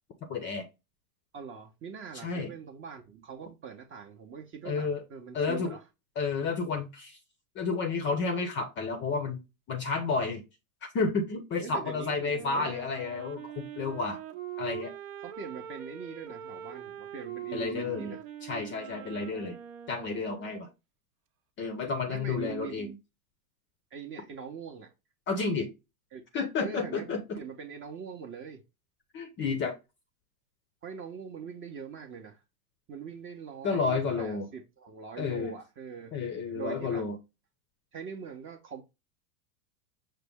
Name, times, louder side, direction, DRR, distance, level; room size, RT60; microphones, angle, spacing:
voice 1, 0.2-0.6 2.1-2.5 4.6-5.0 5.3-5.7 6.2-7.2 7.6-9.4 9.7-10.4 10.9-14.2 14.6-14.9 17.5-19.6 19.9-20.7 21.6-22.9 25.3-25.7 26.3-27.4 29.1-29.8 33.6-34.5 35.2-35.5 36.1-37.2, left 4 dB, 25° left, 0.5 m, -31 dB
voice 2, 1.3-5.8 11.6-12.7 15.2-18.2 22.1-22.9 23.9-24.9 26.1-26.2 26.6-28.6 30.8-32.4 32.9-36.1 36.5-37.1 37.9-38.8, right 6 dB, 25° right, 0.6 m, -42 dB
Wind instrument woodwind instrument, 12.3-20.7, right 10 dB, 65° right, 0.8 m, -43 dB
5.8 x 2.2 x 3.5 m
hypercardioid pair, 115°, 46 cm